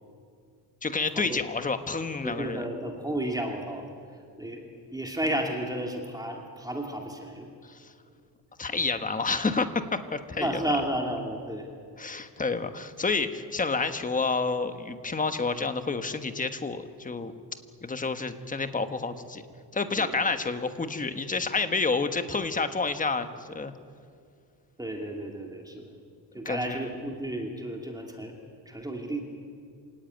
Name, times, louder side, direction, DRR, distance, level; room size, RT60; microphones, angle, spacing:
voice 1, 0.8-2.6 7.6-7.9 8.6-10.5 12.0-17.3 17.8-19.4 19.7-23.7 26.4-26.8, left 4 dB, 20° left, 9 dB, 1.3 m, -29 dB
voice 2, 2.2-3.8 4.4-4.6 4.9-7.5 10.4-11.7 19.9-20.2 24.8-25.9 26.3-28.4 28.7-29.2, right 1 dB, 10° right, 1 dB, 2.5 m, -32 dB
27.0 x 18.0 x 9.3 m, 2.3 s
cardioid pair, 160°, 42 cm